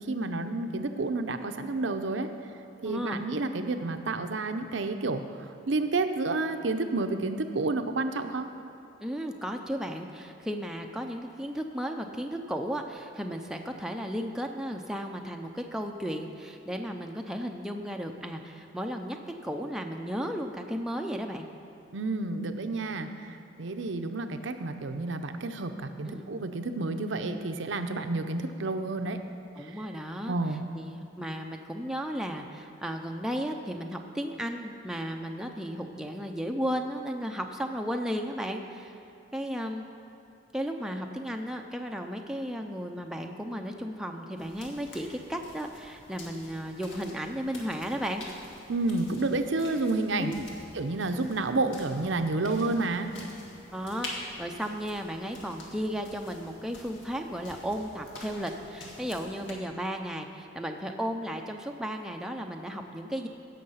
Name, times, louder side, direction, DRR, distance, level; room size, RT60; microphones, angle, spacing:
voice 1, 0.0-2.3 2.8-8.5 21.9-29.2 29.6-29.8 30.3-30.6 48.7-50.3 50.7-53.1, right 3 dB, 70° right, 7 dB, 0.7 m, -30 dB
voice 2, 2.8-3.2 9.0-19.2 19.4-21.5 26.1-26.3 29.6-39.0 39.3-39.8 40.5-48.2 50.2-50.5 53.7-63.3, equal, 5° right, 2 dB, 0.5 m, -34 dB
sound 1, 44.4-59.5, left 1 dB, 70° left, 1.9 m, -47 dB
16.0 x 6.6 x 5.6 m, 2.6 s
head